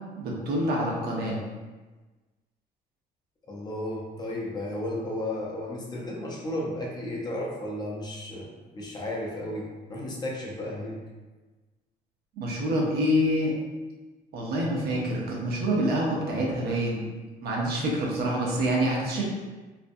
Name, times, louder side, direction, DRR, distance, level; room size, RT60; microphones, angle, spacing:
voice 1, 0.2-1.4 12.4-13.5 14.3-17.1 17.4-19.2, equal, 70° right, -2 dB, 0.7 m, -26 dB
voice 2, 3.5-11.0, left 1 dB, 25° left, -3 dB, 0.6 m, -34 dB
2.6 x 2.2 x 2.5 m, 1.2 s
cardioid pair, 110°, 17 cm